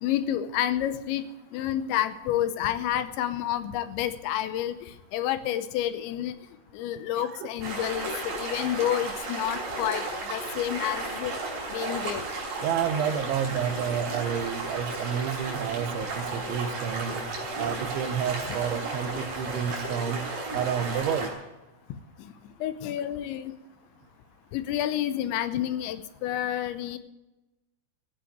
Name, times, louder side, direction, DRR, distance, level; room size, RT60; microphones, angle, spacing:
voice 1, 0.0-1.2 1.5-4.8 5.1-6.3 6.7-11.3 11.7-12.3 22.6-23.5 24.5-27.0, left 11 dB, 80° left, 12 dB, 3.0 m, -29 dB
voice 2, 7.2-7.9 12.6-17.3 17.6-21.3, right 8 dB, 80° right, 10 dB, 3.3 m, -30 dB
sound 1, 7.6-21.3, right 3 dB, 50° right, 5.9 m, -34 dB
15.0 x 8.8 x 9.1 m, 1.0 s
omnidirectional pair, 5.5 m